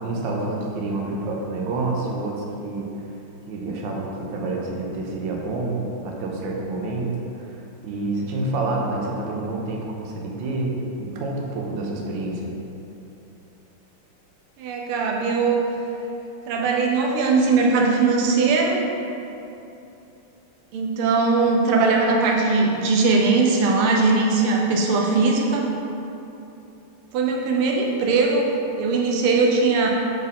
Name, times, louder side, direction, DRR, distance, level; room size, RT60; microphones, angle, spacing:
voice 1, 0.0-2.9 3.5-7.6 7.8-12.4, right 2 dB, 70° right, -1 dB, 1.4 m, -28 dB
voice 2, 14.6-15.6 16.5-18.8 20.7-25.7 27.1-29.9, right 4 dB, 90° right, 0 dB, 1.6 m, -20 dB
6.3 x 4.4 x 3.6 m, 2.9 s
omnidirectional pair, 2.3 m